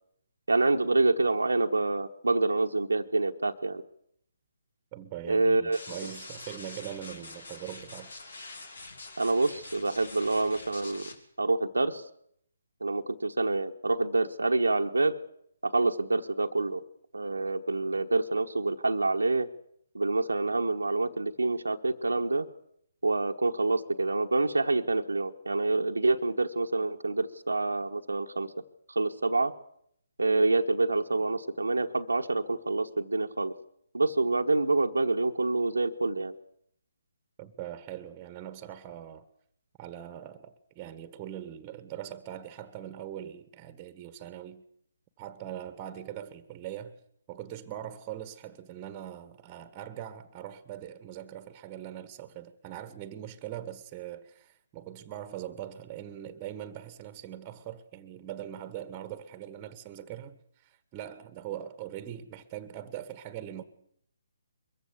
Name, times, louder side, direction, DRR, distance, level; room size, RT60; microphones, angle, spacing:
voice 1, 0.5-3.8 5.3-5.8 9.2-11.1 11.4-12.0 12.8-15.1 15.6-16.8 17.1-19.5 19.9-22.4 23.0-28.5 28.9-29.5 30.2-33.5 33.9-36.3, right 2 dB, 85° right, 1.2 m, -27 dB
voice 2, 4.9-8.1 37.4-39.2 39.8-44.6 45.2-47.0 47.3-63.6, right 11 dB, 25° right, 1.5 m, -41 dB
sound 1, 5.7-11.1, left 3 dB, 65° left, 3.2 m, -45 dB
22.5 x 15.0 x 8.3 m
figure-of-eight pair, 140°, 0 cm